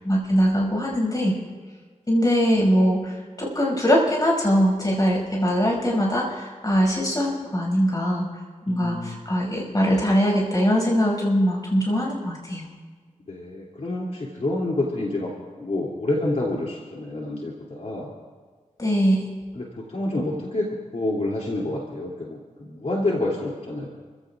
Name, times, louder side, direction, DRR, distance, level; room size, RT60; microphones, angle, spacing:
voice 1, 0.0-1.4 2.1-8.3 8.7-12.7 18.8-19.2, equal, 30° left, -2 dB, 6.1 m, -22 dB
voice 2, 8.7-9.2 13.3-18.1 19.5-23.9, left 2 dB, 60° left, -4 dB, 2.8 m, -28 dB
29.5 x 15.5 x 2.5 m, 1.5 s
wide cardioid pair, 80°, 13 cm